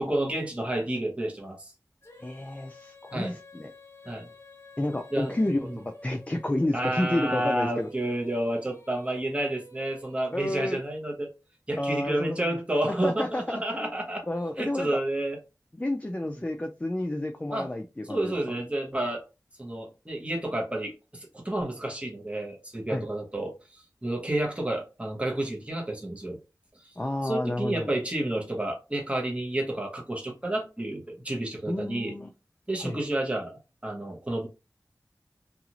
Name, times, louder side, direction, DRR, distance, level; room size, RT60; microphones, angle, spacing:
voice 1, 0.0-1.7 3.1-3.3 4.0-4.3 5.1-5.4 5.6-5.8 6.7-11.3 11.7-14.3 14.6-15.4 16.2-16.4 17.5-17.7 18.1-19.2 19.6-26.4 26.8-26.9 27.2-32.1 32.7-34.5, right 1 dB, 15° right, 1.0 m, -30 dB
Female singing, 2.0-11.2, left 2 dB, 35° left, 0.9 m, -52 dB
voice 2, 2.2-3.7 4.8-7.9 10.3-10.8 11.8-12.6 12.9-13.9 14.3-15.0 15.7-18.3 22.9-23.0 27.0-27.9 31.7-32.3 32.8-33.0, left 1 dB, 20° left, 0.3 m, -30 dB
2.6 x 2.4 x 2.9 m
wide cardioid pair, 60°, 7 cm